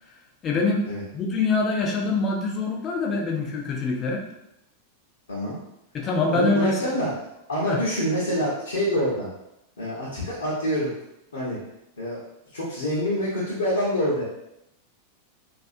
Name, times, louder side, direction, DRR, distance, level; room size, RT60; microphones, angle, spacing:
voice 1, 0.4-4.3 5.9-6.8 7.7-7.8, left 3 dB, 30° left, 0 dB, 0.5 m, -24 dB
voice 2, 6.3-7.1 7.5-9.3 9.8-10.9 11.3-11.6 12.0-12.2 12.5-14.2, equal, 70° left, -6 dB, 0.6 m, -26 dB
2.4 x 2.3 x 2.5 m, 0.83 s
figure-of-eight pair, 90°, 0 cm